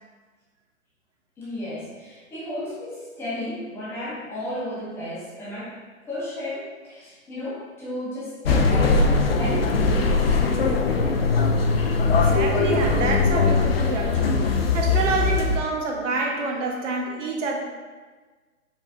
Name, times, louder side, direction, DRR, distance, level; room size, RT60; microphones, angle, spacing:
voice 1, 1.4-5.8 6.1-11.4, left 1 dB, 5° left, -9 dB, 0.8 m, -34 dB
sound 1, 8.4-15.6, left 3 dB, 45° left, 0.5 m, -21 dB
voice 2, 12.1-17.6, right 3 dB, 60° right, 0 dB, 1.1 m, -27 dB
5.1 x 4.1 x 2.6 m, 1.4 s
hypercardioid pair, 145°, 42 cm